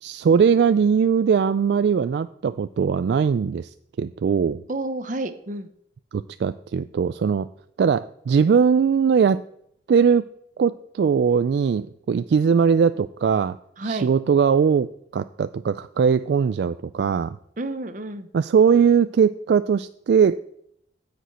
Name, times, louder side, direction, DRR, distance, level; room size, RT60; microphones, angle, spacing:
voice 1, 0.0-4.6 6.1-7.5 7.8-9.4 9.9-10.2 10.6-13.6 13.8-17.4 18.3-20.5, right 6 dB, 70° right, 13 dB, 0.3 m, -20 dB
voice 2, 4.7-5.7 13.8-14.1 17.6-18.3, right 2 dB, 45° right, 10 dB, 0.8 m, -30 dB
9.9 x 5.2 x 8.0 m, 0.72 s
head